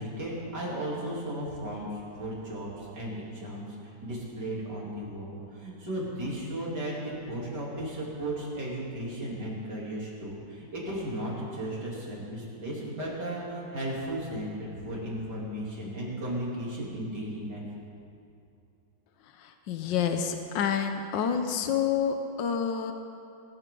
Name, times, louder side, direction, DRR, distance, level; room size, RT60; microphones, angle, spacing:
voice 1, 0.0-17.6, right 1 dB, 65° right, -5 dB, 3.8 m, -35 dB
voice 2, 19.4-22.9, left 7 dB, 80° left, 6 dB, 1.5 m, -28 dB
20.5 x 13.5 x 3.8 m, 2.6 s
omnidirectional pair, 2.0 m